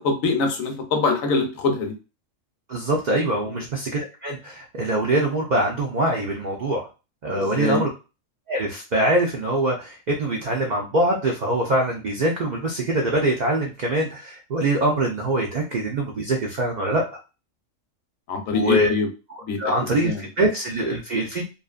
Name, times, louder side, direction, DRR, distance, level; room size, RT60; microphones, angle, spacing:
voice 1, 0.0-1.9 3.5-3.6 7.3-7.8 18.3-19.1 19.4-19.7 20.0-20.2, left 4 dB, 85° left, 5 dB, 1.1 m, -24 dB
voice 2, 2.7-6.8 7.2-7.9 8.5-17.0 18.5-18.9 19.3-21.5, right 1 dB, 75° right, 0 dB, 0.4 m, -23 dB
2.6 x 2.5 x 2.3 m, 0.30 s
omnidirectional pair, 1.4 m